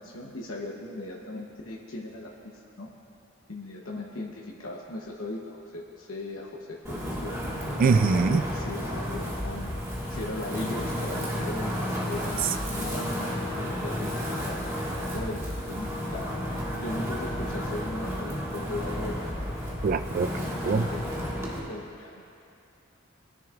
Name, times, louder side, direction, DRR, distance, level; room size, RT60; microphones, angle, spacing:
voice 1, 0.0-2.9 3.5-7.6 8.1-9.7 10.1-12.4 12.7-14.6 15.1-16.3 16.8-19.3 20.6-22.2, left 2 dB, 85° left, -2 dB, 1.0 m, -38 dB
Wind, 6.8-21.6, equal, 15° right, 1.7 m, -32 dB
voice 2, 7.8-8.4 19.8-20.3 20.6-20.9, right 4 dB, 40° right, 11 dB, 0.3 m, -22 dB
21.0 x 10.5 x 2.5 m, 2.5 s
head